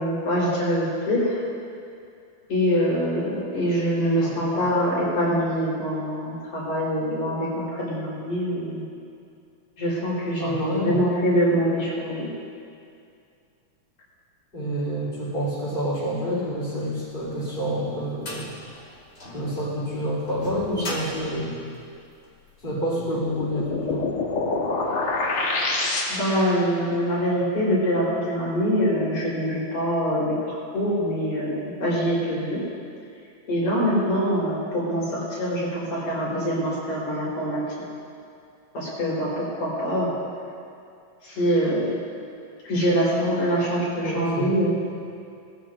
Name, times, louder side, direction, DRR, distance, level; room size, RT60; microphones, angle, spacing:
voice 1, 0.0-1.4 2.5-8.8 9.8-12.3 26.1-32.6 33.5-37.6 38.7-40.1 41.2-42.0 42.6-44.8, equal, 65° left, -7 dB, 5.4 m, -24 dB
voice 2, 4.2-4.7 10.4-11.0 14.5-18.6 19.2-21.6 22.6-24.1 44.0-44.5, equal, 15° left, -5 dB, 3.7 m, -28 dB
sound 1, 17.2-22.5, equal, 35° left, 2.5 m, -38 dB
sound 2, 22.9-26.6, left 3 dB, 50° left, 1.9 m, -26 dB
20.0 x 14.5 x 2.6 m, 2.4 s
omnidirectional pair, 3.5 m